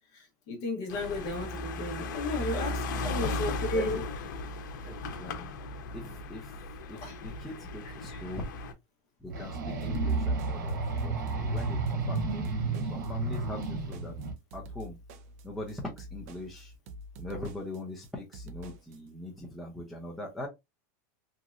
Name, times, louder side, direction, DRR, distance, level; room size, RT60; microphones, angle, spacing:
voice 1, 0.1-4.0 5.4-5.5 7.0-7.1 8.1-8.2, left 2 dB, 35° left, 0.9 m, -34 dB
sound 1, 0.9-8.7, left 2 dB, 90° left, 0.7 m, -36 dB
voice 2, 3.7-4.0 4.8-5.4 5.9-6.6 6.9-8.5 9.2-14.2 14.5-15.0 15.4-16.7 17.2-20.5, left 1 dB, ahead, 0.5 m, -41 dB
sound 2, 9.3-14.3, right 3 dB, 90° right, 1.0 m, -31 dB
sound 3, 9.8-19.0, equal, 45° right, 0.5 m, -47 dB
3.1 x 2.6 x 2.4 m
supercardioid pair, 170°, 10 cm